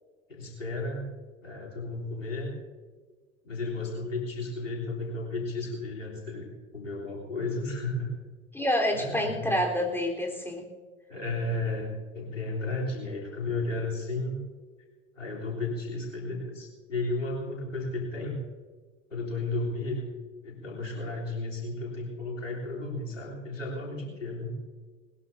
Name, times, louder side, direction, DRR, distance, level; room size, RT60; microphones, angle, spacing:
voice 1, 0.3-1.1 1.4-2.5 3.4-8.1 8.9-9.6 11.1-14.4 15.2-18.4 19.1-20.1 20.4-24.5, left 2 dB, 90° left, -3 dB, 3.5 m, -33 dB
voice 2, 8.5-10.7, equal, 5° left, 0 dB, 3.8 m, -28 dB
20.5 x 20.5 x 2.7 m, 1.5 s
figure-of-eight pair, 70°, 37 cm